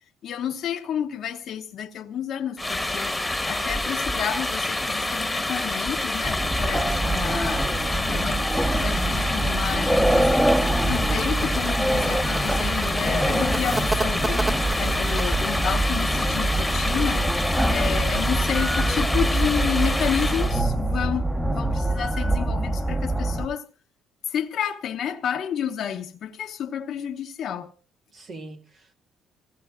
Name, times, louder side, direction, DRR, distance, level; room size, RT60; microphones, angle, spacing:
voice 1, 0.2-3.2 3.5-7.7 8.0-10.3 10.8-17.3 17.7-23.7 24.3-27.7, left 9 dB, 65° left, 0.9 m, -30 dB
sound 1, 2.6-20.6, left 2 dB, 10° left, 1.4 m, -27 dB
sound 2, 6.2-23.5, right 1 dB, 10° right, 1.2 m, -25 dB
voice 2, 7.7-8.1 28.1-28.9, right 2 dB, 55° right, 2.0 m, -41 dB
sound 3, 10.7-15.6, right 2 dB, 25° right, 2.7 m, -33 dB
27.0 x 16.5 x 2.5 m
supercardioid pair, 75°, 0 cm